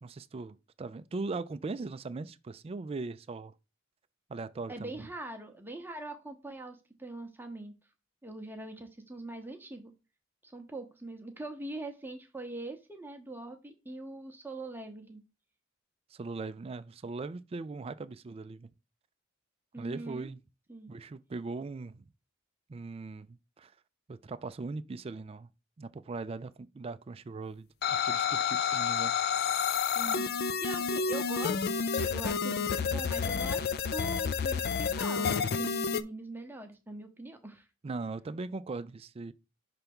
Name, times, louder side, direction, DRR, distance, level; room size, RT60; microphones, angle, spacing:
voice 1, 0.0-3.5 4.3-4.9 16.1-18.7 19.8-20.4 20.9-22.1 22.7-23.7 24.1-25.5 25.8-29.2 37.8-39.3, right 3 dB, 30° right, 0.3 m, -39 dB
voice 2, 4.7-7.7 8.2-9.9 10.4-15.2 19.7-20.3 20.7-20.9 29.9-37.7, right 2 dB, 10° right, 0.8 m, -42 dB
sound 1, 27.8-36.0, left 6 dB, 50° left, 0.4 m, -30 dB
5.8 x 3.3 x 5.3 m
head